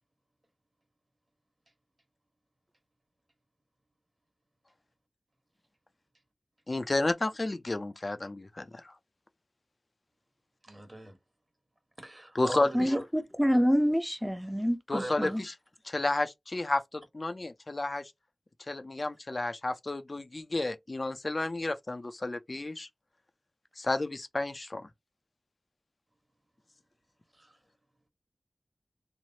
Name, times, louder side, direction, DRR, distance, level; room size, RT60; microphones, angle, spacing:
voice 1, 6.7-8.9 12.3-12.9 14.9-15.5 15.8-18.1 18.7-22.9 23.8-24.9, left 2 dB, 50° left, 0.4 m, -32 dB
voice 2, 10.6-11.2 12.0-13.0 14.9-15.4 27.4-27.5, right 1 dB, 35° right, 1.2 m, -38 dB
voice 3, 13.4-15.4, equal, 5° right, 0.6 m, -26 dB
3.1 x 2.0 x 2.7 m
cardioid pair, 40°, 0 cm